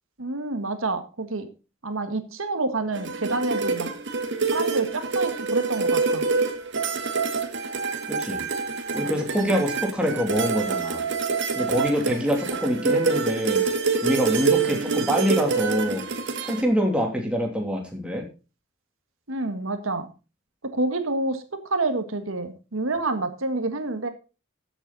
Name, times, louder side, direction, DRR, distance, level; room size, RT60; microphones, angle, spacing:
voice 1, 0.2-1.5 1.8-3.9 4.5-6.2 9.4-9.6 19.3-20.1 20.7-24.1, right 2 dB, 80° right, 8 dB, 1.7 m, -28 dB
sound 1, 2.9-16.6, right 4 dB, 60° right, 1.7 m, -26 dB
voice 2, 8.1-8.4 8.9-11.0 11.5-13.6 14.0-16.0 16.4-18.2, equal, 5° right, 1 dB, 2.9 m, -25 dB
14.0 x 8.1 x 4.1 m, 0.32 s
head